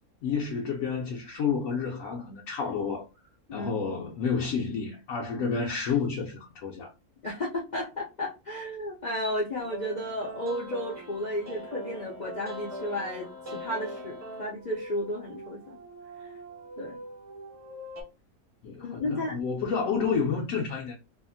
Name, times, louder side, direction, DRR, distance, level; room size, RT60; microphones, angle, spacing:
voice 1, 0.2-3.0 3.5-6.9 18.6-21.0, left 5 dB, 70° left, 0.9 m, -30 dB
voice 2, 7.2-15.8 16.8-17.0 18.8-19.4, left 1 dB, 55° left, 0.5 m, -33 dB
sound 1, 9.6-18.0, equal, 30° right, 0.7 m, -42 dB
2.7 x 2.4 x 2.5 m
omnidirectional pair, 1.6 m